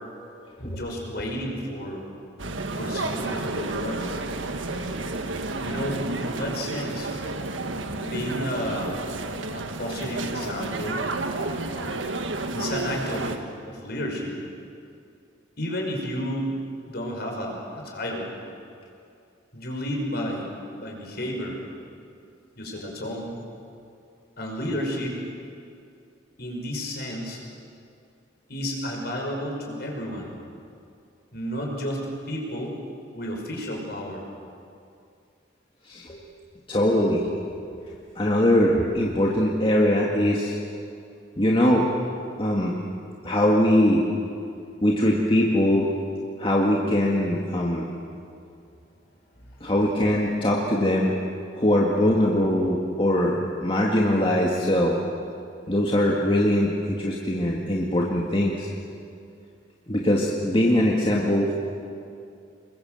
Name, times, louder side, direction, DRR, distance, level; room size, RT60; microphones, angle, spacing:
voice 1, 0.6-2.1 2.7-4.1 5.6-7.1 8.0-9.0 9.5-11.1 12.5-13.3 13.7-14.4 15.6-16.5 16.9-18.3 19.5-20.5 20.8-21.6 22.6-23.4 24.4-25.2 26.4-27.4 28.5-30.3 31.3-32.7 33.1-34.2, equal, 55° left, 0 dB, 5.7 m, -31 dB
sound 1, 2.4-13.4, right 2 dB, 90° right, 1.7 m, -31 dB
voice 2, 35.9-36.2 36.7-37.3 38.2-40.6 41.4-41.9 42.4-42.8 43.2-44.0 44.8-45.9 46.4-47.9 49.6-51.2 51.5-55.0 55.7-58.7 59.9-61.5, left 1 dB, 30° left, -3 dB, 2.0 m, -22 dB
27.0 x 22.0 x 7.8 m, 2.5 s
head